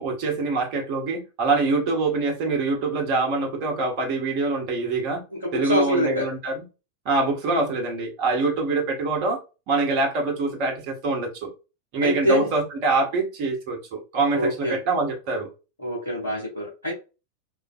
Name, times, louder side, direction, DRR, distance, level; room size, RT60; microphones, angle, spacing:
voice 1, 0.0-5.2 5.5-6.6 7.0-9.4 9.7-11.5 11.9-15.5, right 3 dB, 45° right, 1.1 m, -24 dB
voice 2, 5.3-6.3 12.0-12.5 14.3-14.8 15.8-16.9, equal, 80° left, 1.3 m, -25 dB
3.2 x 2.5 x 2.4 m
figure-of-eight pair, 90°, 0 cm